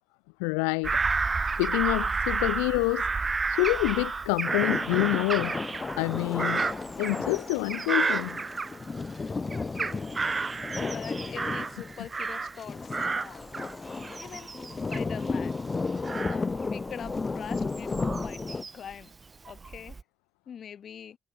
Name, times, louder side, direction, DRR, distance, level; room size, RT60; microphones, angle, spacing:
voice 1, 0.4-1.0 1.6-3.1 3.5-5.6 6.0-6.7 7.0-8.4 10.8-10.9, left 40 dB or more, 70° left, 0.7 m, -27 dB
Bird vocalization bird call bird song / Crow, 0.8-9.2 9.5-12.6 12.9-18.9 19.4-20.0, right 4 dB, 30° right, 0.5 m, -31 dB
sound 1, 4.4-18.6, left 4 dB, 30° left, 2.5 m, -34 dB
voice 2, 9.7-10.1 10.8-13.5 14.2-14.5 14.9-15.6 16.3-19.1 19.5-20.0 20.5-21.2, left 8 dB, 50° left, 2.8 m, -43 dB
figure-of-eight pair, 45°, 0 cm